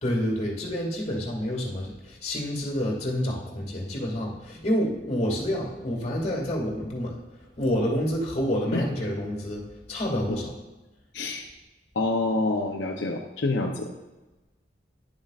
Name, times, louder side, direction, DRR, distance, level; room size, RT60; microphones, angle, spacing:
voice 1, 0.0-10.5, equal, 35° left, -2 dB, 2.3 m, -28 dB
voice 2, 12.0-13.9, left 2 dB, 80° left, -1 dB, 0.8 m, -27 dB
11.0 x 7.3 x 2.5 m, 1.1 s
head